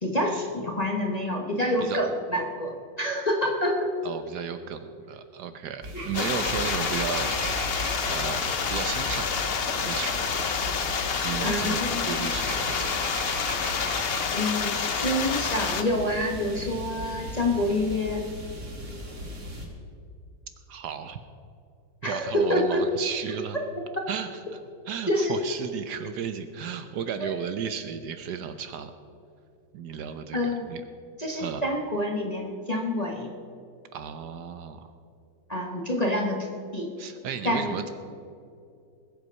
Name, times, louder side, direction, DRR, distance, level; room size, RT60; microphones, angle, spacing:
voice 1, 0.0-3.9 6.2-6.3 11.4-12.1 14.1-18.2 22.0-22.8 25.1-25.4 27.2-27.3 30.3-30.7 31.2-33.3 35.5-36.4 36.7-36.9 37.4-37.8, left 1 dB, 25° left, 0 dB, 1.0 m, -27 dB
voice 2, 4.0-7.3 8.1-10.5 11.2-13.0 20.7-21.2 22.0-23.6 24.1-24.3 24.9-28.9 29.7-30.8 31.4-31.6 33.9-34.9 37.0-37.9, right 8 dB, 70° right, 9 dB, 1.2 m, -34 dB
sound 1, 5.8-19.7, equal, 40° right, 2.4 m, -37 dB
sound 2, 6.1-15.8, left 6 dB, 55° left, 0.6 m, -28 dB
20.5 x 8.0 x 5.4 m, 2.4 s
omnidirectional pair, 2.0 m